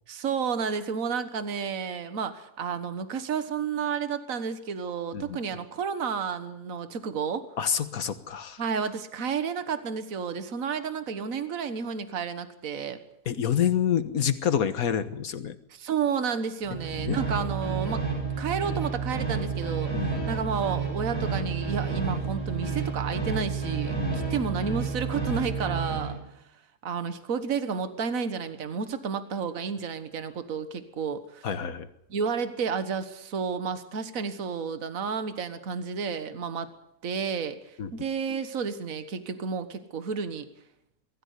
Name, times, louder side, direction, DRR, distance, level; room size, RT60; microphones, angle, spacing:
voice 1, 0.1-7.5 8.6-13.0 15.7-18.0 18.4-26.2 26.8-31.5 32.1-36.7 37.0-40.5, right 6 dB, 60° right, 10 dB, 1.8 m, -31 dB
voice 2, 7.6-8.6 13.3-15.6 16.9-17.2 19.9-20.3 24.0-24.2 31.4-31.9 37.8-37.9, left 8 dB, 65° left, 11 dB, 1.7 m, -28 dB
sound 1, 16.6-26.2, right 5 dB, 15° right, 6.9 m, -30 dB
23.0 x 14.5 x 9.5 m, 0.80 s
omnidirectional pair, 1.7 m